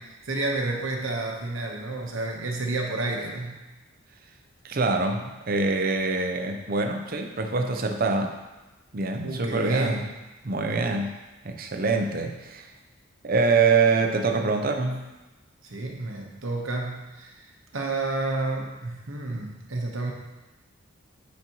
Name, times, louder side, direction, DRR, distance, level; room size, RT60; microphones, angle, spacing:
voice 1, 0.1-3.6 9.2-10.1 15.6-20.1, right 2 dB, 75° right, 1 dB, 1.0 m, -30 dB
voice 2, 4.6-8.4 8.9-10.0 10.4-11.2 11.4-12.7 13.2-15.0, right 4 dB, 45° right, 4 dB, 0.6 m, -25 dB
10.0 x 4.2 x 3.0 m, 1.1 s
head